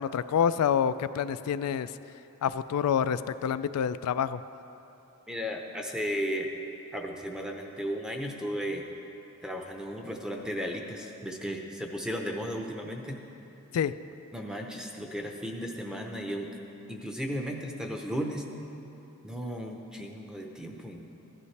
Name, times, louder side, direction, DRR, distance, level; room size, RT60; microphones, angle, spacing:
voice 1, 0.0-1.9 2.4-4.4 13.7-13.9, left 8 dB, 85° left, 14 dB, 0.3 m, -27 dB
voice 2, 5.3-6.5 6.9-8.8 9.4-13.2 14.3-16.6 16.9-18.5 19.2-21.1, equal, 5° right, 1 dB, 0.7 m, -35 dB
15.5 x 11.0 x 3.3 m, 2.9 s
head